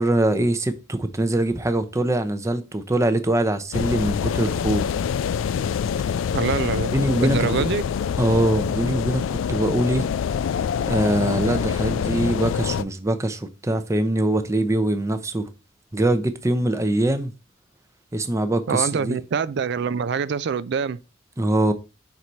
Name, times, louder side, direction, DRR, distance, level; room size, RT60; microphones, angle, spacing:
voice 1, 0.0-4.9 6.9-7.5 8.2-10.1 10.9-15.5 15.9-17.3 18.1-19.2 21.4-21.7, right 1 dB, 15° right, 0.6 m, -23 dB
sound 1, 3.7-12.8, left 7 dB, 70° left, 0.3 m, -25 dB
voice 2, 6.3-7.8 18.7-21.0, right 6 dB, 55° right, 0.4 m, -25 dB
5.7 x 4.7 x 4.0 m
head